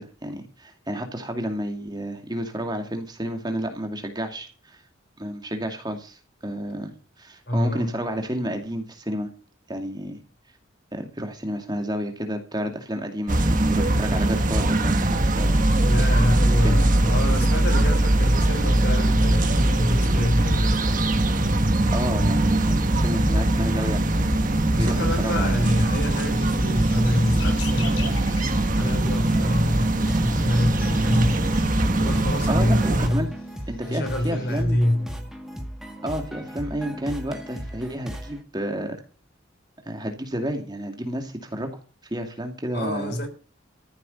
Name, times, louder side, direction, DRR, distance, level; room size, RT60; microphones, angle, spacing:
voice 1, 0.0-4.8 5.2-6.9 7.2-9.3 9.7-10.2 10.9-15.6 16.6-16.8 21.9-24.3 24.8-25.7 32.5-33.3 33.7-34.8 36.0-39.0 39.9-41.7 42.1-43.1, equal, 20° right, 2.4 m, -30 dB
voice 2, 7.5-7.9 15.8-21.0 24.7-28.2 28.6-31.6 32.0-33.3 33.9-35.3 42.7-43.3, left 1 dB, 55° left, 3.7 m, -26 dB
sound 1, 13.3-33.1, right 1 dB, 40° right, 1.5 m, -21 dB
sound 2, 23.9-34.6, left 5 dB, 80° left, 5.9 m, -46 dB
sound 3, 28.1-38.4, equal, ahead, 1.9 m, -37 dB
14.5 x 7.6 x 7.0 m
head